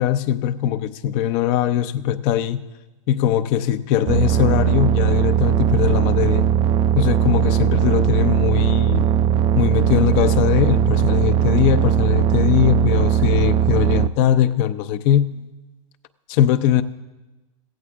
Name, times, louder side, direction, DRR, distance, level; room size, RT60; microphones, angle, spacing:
voice 1, 0.0-2.7 3.1-6.5 6.9-9.1 9.5-15.5 16.3-16.8, left 10 dB, 45° left, 0.7 m, -20 dB
sound 1, 4.1-14.1, right 9 dB, 30° right, 0.5 m, -18 dB
16.0 x 15.5 x 3.6 m
hypercardioid pair, 110°, 17 cm